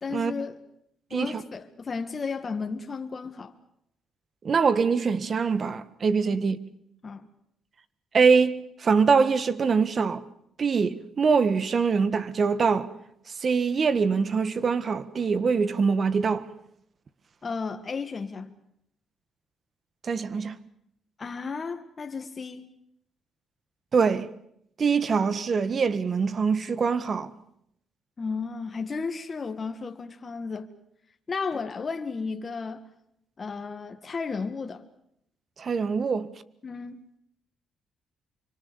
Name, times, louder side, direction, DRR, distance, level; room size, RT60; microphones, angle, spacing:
voice 1, 0.0-0.6 1.1-3.5 6.3-6.4 7.0-7.3 17.4-18.6 21.2-22.7 28.2-30.7 31.3-32.9 33.4-34.8 36.6-37.0, left 4 dB, 35° left, 2.0 m, -33 dB
voice 2, 1.1-1.4 4.4-6.6 8.1-10.2 10.6-12.9 13.4-16.5 20.0-20.6 23.9-24.3 24.8-27.3 35.6-36.3, right 5 dB, 45° right, 1.5 m, -23 dB
25.5 x 25.0 x 7.1 m
cardioid pair, 90°, 0 cm